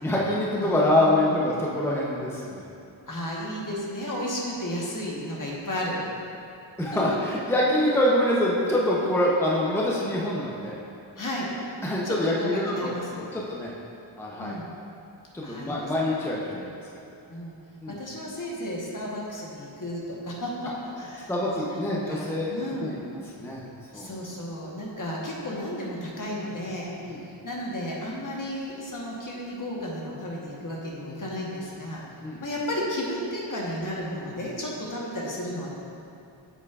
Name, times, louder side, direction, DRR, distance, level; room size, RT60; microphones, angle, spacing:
voice 1, 0.0-2.6 6.8-10.8 11.8-13.7 14.2-14.5 15.3-16.7 17.8-18.0 21.3-23.6 23.9-24.1 27.0-27.2 32.2-32.4, left 1 dB, 5° left, -5 dB, 0.7 m, -25 dB
voice 2, 0.6-1.4 3.1-6.1 11.2-11.5 12.0-13.2 14.4-14.7 15.4-15.9 17.3-17.5 17.9-21.3 21.6-23.1 23.9-32.1 32.4-35.7, left 1 dB, 45° left, -3 dB, 1.2 m, -33 dB
8.0 x 7.1 x 2.4 m, 2.6 s
wide cardioid pair, 105°, 46 cm